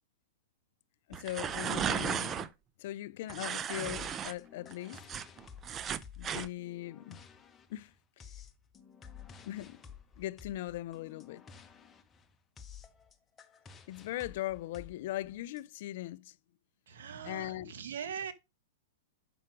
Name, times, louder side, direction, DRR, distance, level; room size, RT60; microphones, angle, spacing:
voice 1, 1.1-2.5 2.8-5.0 6.2-7.2 7.7-7.9 8.2-8.3 9.4-9.8 10.2-11.4 13.9-16.3 17.2-17.7, left 15 dB, 55° left, 0.4 m, -39 dB
sound 1, 1.1-2.5 3.3-4.3 4.7-6.5, right 8 dB, 25° right, 0.6 m, -35 dB
sound 2, 3.8-15.6, left 7 dB, 20° left, 1.2 m, -53 dB
voice 2, 16.9-18.3, right 7 dB, 75° right, 1.4 m, -41 dB
7.0 x 5.8 x 4.7 m
hypercardioid pair, 130°, 0 cm